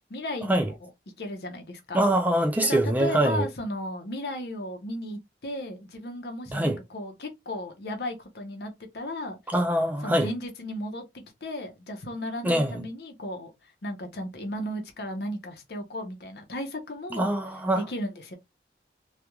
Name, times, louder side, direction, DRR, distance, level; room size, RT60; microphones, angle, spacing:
voice 1, 0.1-0.9 1.2-2.0 2.7-9.4 10.0-13.5 13.8-17.3 17.7-18.4, left 1 dB, 65° left, 0.7 m, -35 dB
voice 2, 1.9-3.5 6.5-6.8 9.5-10.3 12.4-12.8 17.1-17.8, right 1 dB, 10° right, 0.3 m, -24 dB
3.0 x 2.3 x 2.2 m
head